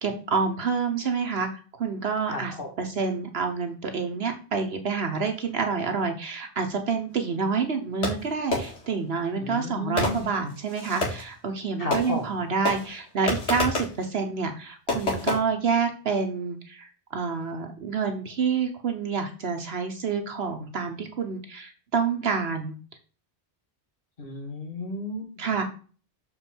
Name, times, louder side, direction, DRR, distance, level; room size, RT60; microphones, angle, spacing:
voice 1, 0.0-22.7 25.4-25.6, right 5 dB, 65° right, 5 dB, 1.1 m, -28 dB
voice 2, 2.3-2.7 9.3-10.3 11.8-12.2 24.2-25.4, left 2 dB, 55° left, 1 dB, 2.2 m, -33 dB
Fireworks, 8.0-9.0 10.0-11.3 11.9-12.4 12.7-14.0 14.9-15.4, left 2 dB, 85° left, 2.4 m, -29 dB
7.1 x 4.4 x 4.3 m, 0.37 s
omnidirectional pair, 1.1 m